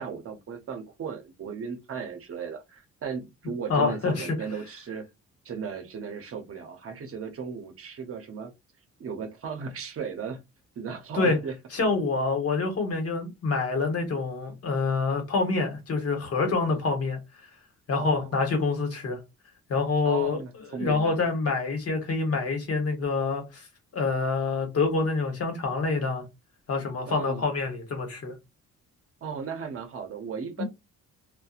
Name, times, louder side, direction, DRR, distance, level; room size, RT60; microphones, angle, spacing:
voice 1, 0.0-5.1 5.4-8.5 9.0-10.4 10.8-11.6 12.0-12.2 17.9-18.3 20.0-21.2 27.1-27.5 29.2-30.6, right 6 dB, 50° right, 0.7 m, -36 dB
voice 2, 3.7-4.3 11.1-11.4 11.7-17.2 17.9-19.2 19.7-20.4 20.7-23.7 23.9-26.2 26.7-28.3 30.6-30.7, left 4 dB, 50° left, 1.1 m, -26 dB
2.6 x 2.1 x 2.4 m
cardioid pair, 90°, 30 cm